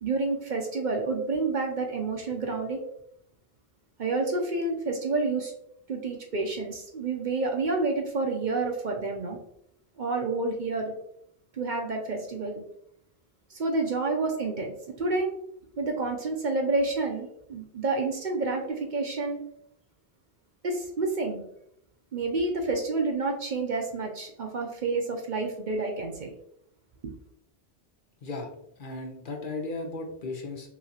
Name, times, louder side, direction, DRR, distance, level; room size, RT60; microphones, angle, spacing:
voice 1, 0.0-2.8 4.0-5.5 5.9-9.4 10.0-10.9 11.5-12.6 13.5-15.3 15.8-19.4 20.6-21.4 22.1-26.3, right 3 dB, 55° right, 2 dB, 0.7 m, -29 dB
voice 2, 28.8-30.7, left 3 dB, 55° left, 3 dB, 0.9 m, -35 dB
5.9 x 2.8 x 2.8 m, 0.75 s
omnidirectional pair, 1.1 m